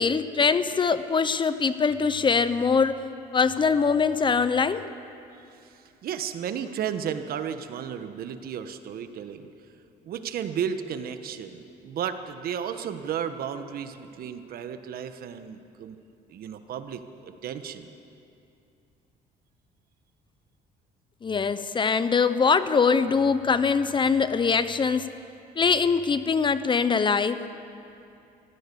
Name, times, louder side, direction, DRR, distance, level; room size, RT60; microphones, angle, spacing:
voice 1, 0.0-3.0 3.3-4.8 21.2-25.1 25.6-27.4, left 5 dB, 30° left, 13 dB, 0.7 m, -23 dB
voice 2, 5.6-9.5 10.0-16.0 16.3-17.9, right 8 dB, 60° right, 9 dB, 1.3 m, -33 dB
23.5 x 15.5 x 7.0 m, 2.7 s
cardioid pair, 110°, 17 cm